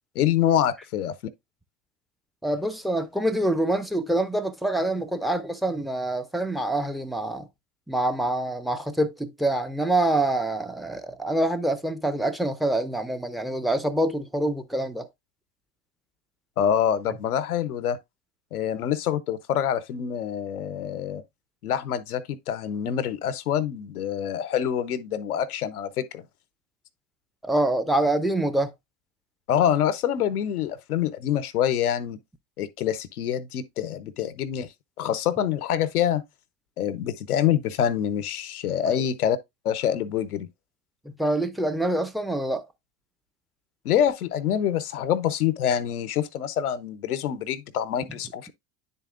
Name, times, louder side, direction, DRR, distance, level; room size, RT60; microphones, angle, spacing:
voice 1, 0.1-1.2 16.6-18.0 18.5-21.2 21.6-26.2 29.5-32.2 32.6-34.7 35.0-36.2 36.8-39.4 39.6-40.5 43.8-48.5, left 9 dB, 85° left, 0.7 m, -26 dB
voice 2, 2.4-7.5 7.9-15.1 27.4-28.7 38.9-39.0 41.2-42.7, right 1 dB, ahead, 0.5 m, -26 dB
10.0 x 4.1 x 2.4 m
hypercardioid pair, 75°, 44 cm